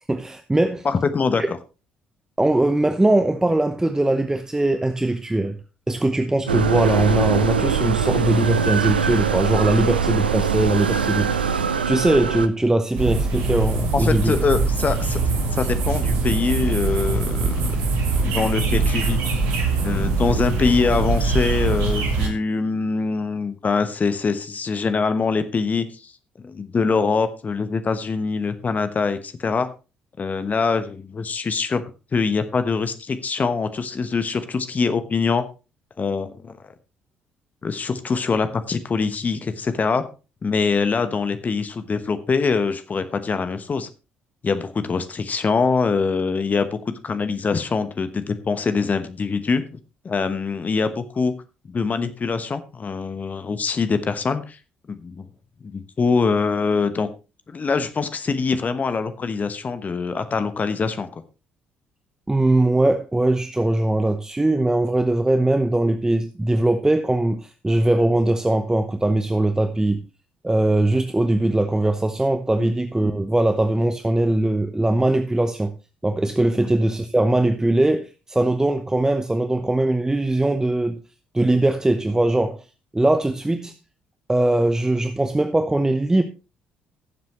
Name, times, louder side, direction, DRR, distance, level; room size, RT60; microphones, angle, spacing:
voice 1, 0.1-0.9 2.4-5.6 5.9-11.6 11.9-14.4 62.3-70.0 70.4-75.7 76.0-81.0 81.3-82.6 82.9-83.7 84.3-86.2, right 1 dB, 10° right, 0.8 m, -20 dB
voice 2, 0.8-1.6 13.9-15.2 15.5-17.7 18.1-19.2 19.8-26.1 26.4-29.7 30.2-31.8 32.1-35.4 36.0-36.6 37.6-40.0 40.4-43.9 44.4-49.6 50.0-51.3 51.7-54.6 54.9-55.2 55.6-57.1 57.5-61.2 72.6-72.7 76.6-76.7, left 4 dB, 30° left, 1.1 m, -23 dB
sound 1, 6.5-12.5, right 6 dB, 80° right, 0.5 m, -22 dB
sound 2, 13.0-22.3, right 3 dB, 65° right, 1.9 m, -22 dB
17.5 x 7.4 x 3.0 m
figure-of-eight pair, 50°, 5 cm